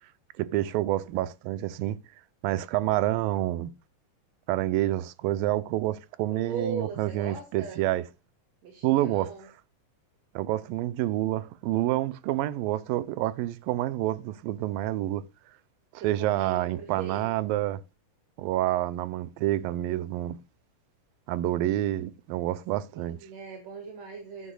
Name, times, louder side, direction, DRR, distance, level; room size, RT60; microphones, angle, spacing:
voice 1, 0.4-2.0 2.4-3.7 4.5-8.0 8.8-9.3 10.4-15.2 15.9-17.8 18.4-20.4 21.3-23.2, right 15 dB, 90° right, 2.4 m, -28 dB
voice 2, 6.3-7.8 8.6-9.5 16.0-17.3 22.9-24.5, right 5 dB, 55° right, 3.0 m, -39 dB
12.5 x 10.0 x 2.3 m
omnidirectional pair, 4.0 m